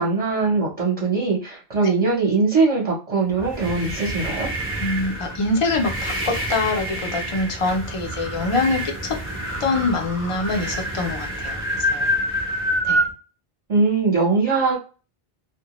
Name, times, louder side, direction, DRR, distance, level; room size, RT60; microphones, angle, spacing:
voice 1, 0.0-4.5 13.7-14.8, right 4 dB, 40° right, -5 dB, 0.8 m, -21 dB
sound 1, 3.3-13.1, right 1 dB, 15° right, 0.6 m, -27 dB
voice 2, 4.8-9.2 9.6-12.1 12.8-13.0, left 3 dB, 40° left, 3 dB, 0.6 m, -24 dB
2.1 x 2.1 x 2.9 m, 0.35 s
omnidirectional pair, 1.0 m